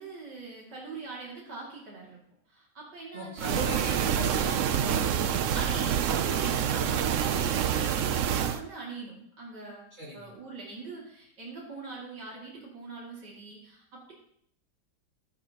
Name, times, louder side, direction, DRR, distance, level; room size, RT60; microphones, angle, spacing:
voice 1, 0.0-2.2 2.5-3.7 5.5-14.1, right 3 dB, 90° right, -4 dB, 3.2 m, -42 dB
voice 2, 3.1-6.9 9.9-10.3, right 1 dB, 40° right, -6 dB, 2.4 m, -40 dB
sound 1, 3.4-8.6, right 9 dB, 65° right, 0.8 m, -27 dB
12.5 x 11.0 x 2.9 m, 0.69 s
omnidirectional pair, 1.8 m